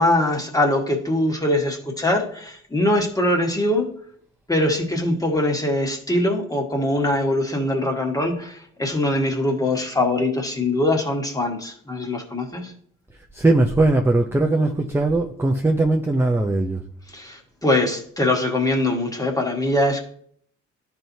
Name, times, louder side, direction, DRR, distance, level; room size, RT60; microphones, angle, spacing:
voice 1, 0.0-3.9 4.5-12.7 17.1-20.0, left 1 dB, 10° left, 2 dB, 1.4 m, -22 dB
voice 2, 13.3-16.8, right 2 dB, 10° right, 3 dB, 0.5 m, -19 dB
11.5 x 4.5 x 2.7 m, 0.62 s
cardioid pair, 90°, 30 cm